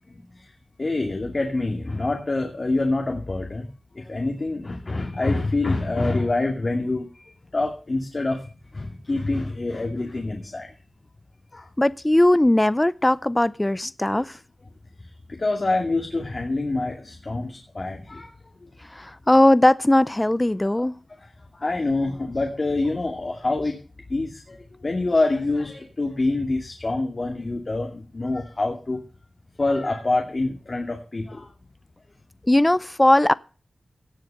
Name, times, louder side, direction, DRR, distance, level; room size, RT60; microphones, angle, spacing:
voice 1, 0.8-3.7 4.0-7.0 7.5-10.7 11.5-11.7 14.1-14.2 15.4-18.3 21.5-23.8 24.1-29.0 29.6-31.5, left 2 dB, 40° left, 2.5 m, -26 dB
voice 2, 11.8-14.4 18.9-20.9 32.5-33.3, left 1 dB, 15° left, 0.6 m, -19 dB
17.5 x 6.8 x 6.7 m
wide cardioid pair, 100°, 0 cm